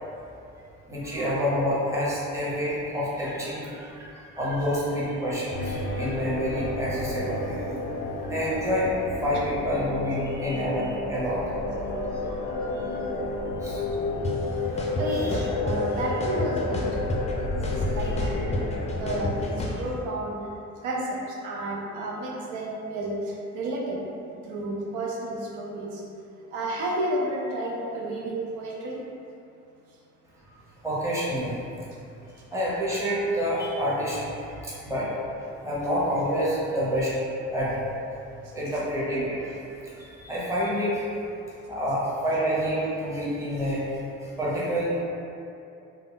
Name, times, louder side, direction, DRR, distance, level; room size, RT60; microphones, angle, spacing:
voice 1, 0.9-7.6 8.2-11.4 12.0-13.2 13.6-13.8 14.6-15.4 17.8-18.4 30.8-31.6 32.5-34.3 34.6-35.3 35.6-37.2 37.5-37.9 38.5-41.0 41.7-45.0, equal, 10° right, -8 dB, 0.8 m, -28 dB
sound 1, 5.5-19.6, left 2 dB, 85° left, 0.5 m, -31 dB
sound 2, 14.2-14.3 14.8-15.8 16.2-17.3 17.6-19.8, left 1 dB, 25° left, 0.4 m, -30 dB
voice 2, 15.0-17.2 17.6-20.4 20.8-24.1 24.4-26.0 26.5-29.0, right 1 dB, 80° right, -4 dB, 0.5 m, -31 dB
2.3 x 2.0 x 3.6 m, 2.7 s
cardioid pair, 90°, 30 cm